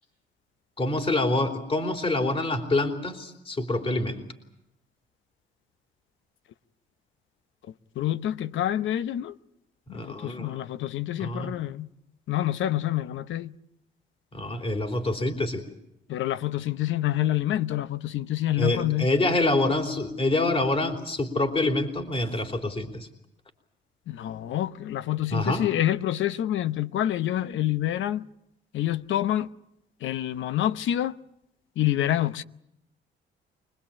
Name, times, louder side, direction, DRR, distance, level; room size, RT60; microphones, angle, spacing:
voice 1, 0.8-4.2 9.9-10.5 11.2-11.5 14.3-15.6 18.6-23.1 25.3-25.7, left 2 dB, 30° left, 3.4 m, -26 dB
voice 2, 8.0-9.3 9.9-11.9 12.3-13.5 16.1-19.1 24.1-28.3 28.7-29.5 30.0-31.2 31.8-32.4, left 12 dB, 75° left, 0.9 m, -27 dB
25.5 x 20.0 x 8.6 m
cardioid pair, 90°, 20 cm